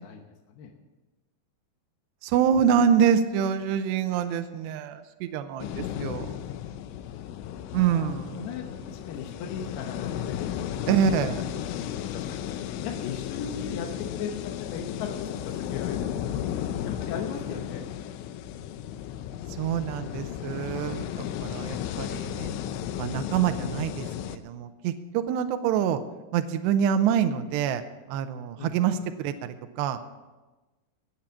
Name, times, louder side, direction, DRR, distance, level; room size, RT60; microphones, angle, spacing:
voice 1, 2.2-6.3 7.7-8.5 10.9-11.4 19.5-22.6 23.0-26.0 26.3-27.8 28.1-30.0, right 8 dB, 85° right, 8 dB, 2.6 m, -26 dB
sound 1, 5.6-24.4, left 10 dB, 90° left, 3.2 m, -34 dB
voice 2, 7.6-11.1 11.7-12.6 12.8-13.9 14.1-16.1 16.8-17.8 28.6-28.9, left 7 dB, 70° left, 3 dB, 2.8 m, -38 dB
19.0 x 7.4 x 7.2 m, 1.2 s
omnidirectional pair, 5.4 m